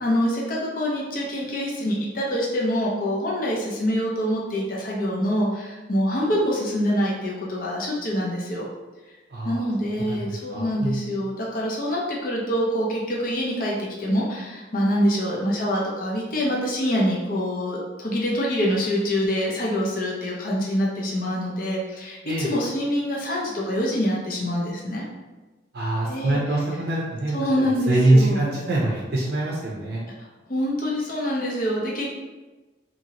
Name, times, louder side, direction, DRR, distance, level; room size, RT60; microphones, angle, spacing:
voice 1, 0.0-8.7 9.4-25.0 26.1-26.4 27.3-28.4 30.2-32.1, equal, 45° left, -3 dB, 0.6 m, -25 dB
voice 2, 9.3-9.7 10.0-11.0 22.2-22.5 25.7-30.0, right 2 dB, 50° right, -4 dB, 0.5 m, -24 dB
2.8 x 2.6 x 2.8 m, 1.2 s
head